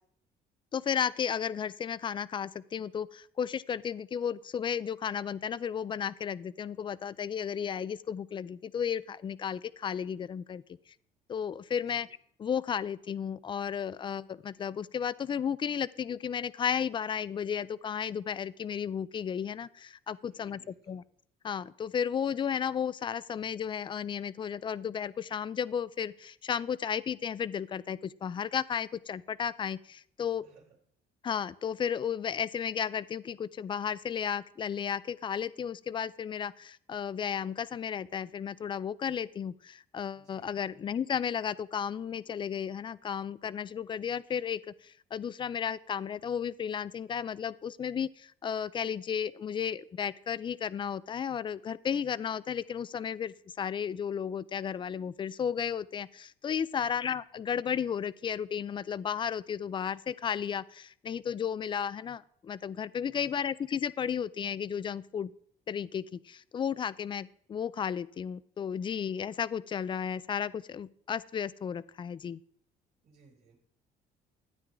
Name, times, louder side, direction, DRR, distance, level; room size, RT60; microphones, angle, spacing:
voice 1, 0.7-10.6 11.3-12.1 12.4-21.0 21.4-30.4 31.2-65.3 65.7-72.4, left 8 dB, 30° left, 19 dB, 0.4 m, -33 dB
voice 2, 11.8-12.1 20.3-21.0 30.4-30.8 40.1-40.5 56.8-57.2 63.0-63.5 73.0-73.6, right 4 dB, 60° right, -1 dB, 2.8 m, -61 dB
13.5 x 9.1 x 3.8 m, 0.64 s
cardioid pair, 110°, 17 cm